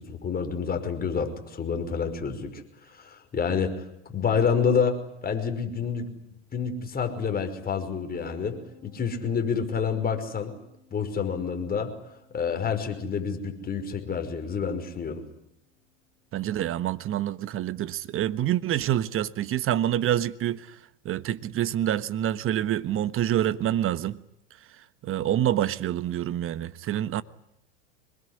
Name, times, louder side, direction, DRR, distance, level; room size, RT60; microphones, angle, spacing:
voice 1, 0.0-6.1 6.5-10.5 10.9-11.9 12.3-15.2, left 6 dB, 25° left, 5.5 m, -28 dB
sound 1, 8.1-17.6, left 3 dB, 70° right, 7.5 m, -59 dB
voice 2, 16.3-20.8 21.0-24.2 25.0-27.2, right 11 dB, 35° right, 1.3 m, -27 dB
25.5 x 22.0 x 9.9 m
hypercardioid pair, 95°, 35 cm